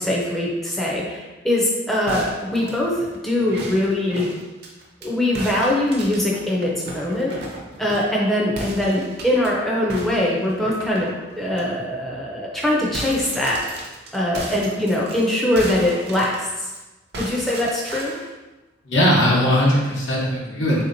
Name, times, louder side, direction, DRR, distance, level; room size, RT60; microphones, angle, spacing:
voice 1, 0.0-2.9 3.2-4.3 5.0-7.3 7.8-11.1 11.4-13.6 14.1-16.7 17.2-18.1, left 1 dB, ahead, -5 dB, 0.4 m, -22 dB
sound 1, 2.1-5.1 5.3-8.2 8.5-9.5 9.9-11.6 12.1-12.2 12.5-16.8 17.1-18.3, right 1 dB, 60° right, 0.6 m, -35 dB
voice 2, 18.9-20.8, equal, 75° left, -4 dB, 0.9 m, -19 dB
3.5 x 2.8 x 2.6 m, 1.1 s
head